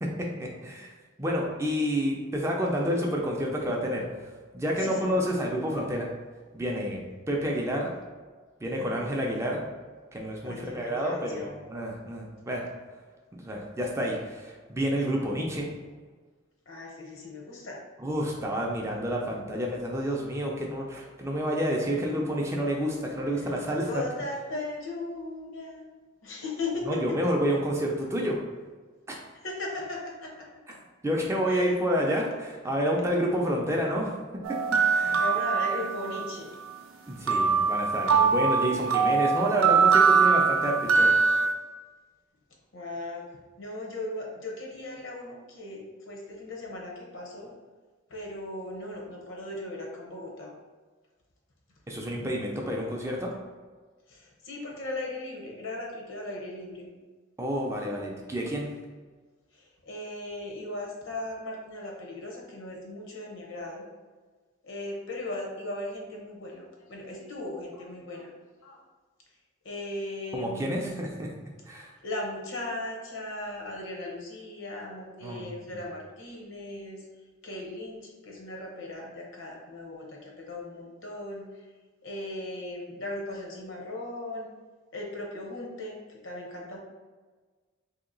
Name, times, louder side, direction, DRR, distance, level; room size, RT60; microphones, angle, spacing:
voice 1, 0.0-0.9 1.2-4.1 4.5-6.1 6.5-7.0 7.3-7.9 8.6-9.6 10.1-12.6 13.3-15.7 18.0-24.1 26.9-28.4 29.1-29.2 31.0-34.1 34.5-34.6 34.9-35.2 37.1-41.1 51.9-53.4 57.4-58.7 70.3-71.3 71.7-71.9 75.2-75.8, equal, 15° right, -1 dB, 0.4 m, -29 dB
voice 2, 4.8-5.2 8.8-9.1 10.4-11.7 16.7-17.8 23.5-25.9 26.2-27.0 29.4-30.5 31.5-31.7 35.1-36.5 42.7-43.2 43.6-47.5 48.1-50.5 54.1-56.9 59.5-63.8 64.6-68.3 68.6-68.8 69.6-71.0 72.0-77.0 77.4-81.4 82.0-84.5 84.9-86.8, left 2 dB, 80° left, -1 dB, 0.8 m, -37 dB
sound 1, 34.4-36.3 37.3-41.5, right 5 dB, 85° right, 0.4 m, -22 dB
2.9 x 2.8 x 3.8 m, 1.4 s
head